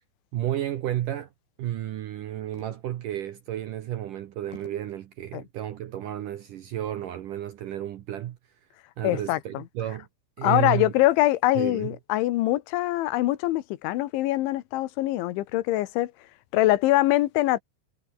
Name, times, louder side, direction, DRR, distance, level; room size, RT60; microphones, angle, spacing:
voice 1, 0.3-1.3 1.6-8.4 9.0-10.1 10.4-10.9 11.6-12.0, right 12 dB, 70° right, 2.0 m, -32 dB
sound 1, 2.5-3.2 3.7-3.8 4.5-5.0 5.8-6.3, left 6 dB, 70° left, 6.7 m, -50 dB
voice 2, 9.0-9.6 10.4-16.1 16.5-17.6, left 16 dB, 90° left, 3.6 m, -23 dB
omnidirectional pair, 5.2 m